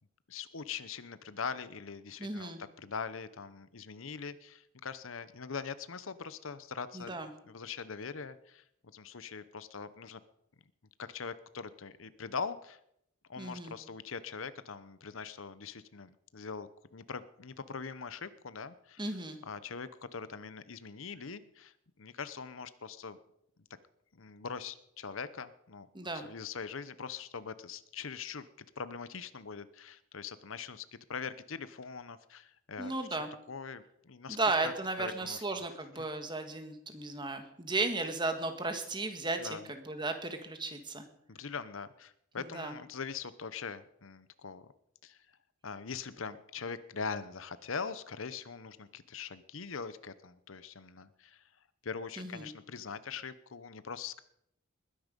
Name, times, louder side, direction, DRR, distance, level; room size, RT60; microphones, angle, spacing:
voice 1, 0.3-2.5 2.8-7.1 7.5-8.6 8.9-10.2 11.0-12.8 13.3-19.1 19.5-23.2 24.1-25.9 26.1-34.4 34.6-34.7 35.0-35.6 39.4-39.7 41.3-44.7 45.0-45.2 45.6-51.4 51.8-54.2, left 5 dB, 70° left, 14 dB, 0.9 m, -42 dB
voice 2, 2.2-2.6 6.9-7.3 13.4-13.7 19.0-19.4 25.9-26.2 32.8-33.3 34.3-41.0 42.4-42.7 52.2-52.5, right 3 dB, 20° right, 7 dB, 1.6 m, -35 dB
20.5 x 10.0 x 5.2 m, 0.75 s
head